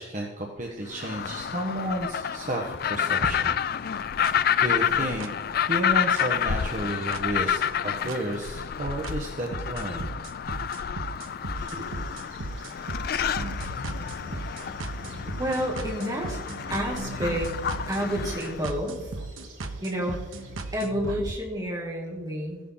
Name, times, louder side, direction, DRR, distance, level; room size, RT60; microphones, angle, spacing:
voice 1, 0.0-3.6 4.6-5.3 5.6-10.1 11.7-11.9, right 1 dB, 40° right, -1 dB, 1.2 m, -32 dB
sound 1, 0.9-18.6, left 8 dB, 50° left, 0.3 m, -29 dB
sound 2, 4.2-4.3 5.2-5.3 6.2-6.3 7.1-7.2 8.1-8.2 9.0-9.1 9.5-21.3, right 2 dB, 85° right, 1.0 m, -36 dB
sound 3, 11.5-20.8, right 2 dB, 65° right, 4.5 m, -50 dB
voice 2, 15.4-16.4 16.7-17.5 17.9-19.1 19.8-20.2 20.7-22.6, equal, 20° right, -3 dB, 2.4 m, -29 dB
14.5 x 10.0 x 3.9 m, 1.2 s
head